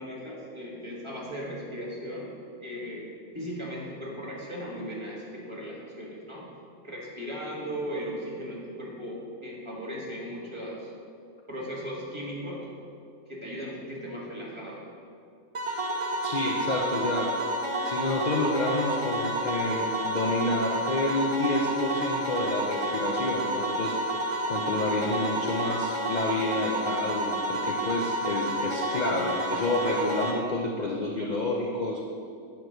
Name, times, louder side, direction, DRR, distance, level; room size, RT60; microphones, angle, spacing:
voice 1, 0.0-2.3 2.6-3.0 3.3-6.5 6.8-10.9 11.5-12.7 13.3-14.9, equal, 20° right, -5 dB, 1.5 m, -37 dB
sound 1, 15.5-30.3, right 1 dB, 45° right, 0.4 m, -30 dB
voice 2, 16.2-17.3 17.8-32.0, left 2 dB, 50° left, 0 dB, 0.5 m, -29 dB
8.7 x 4.6 x 6.4 m, 2.5 s
omnidirectional pair, 1.6 m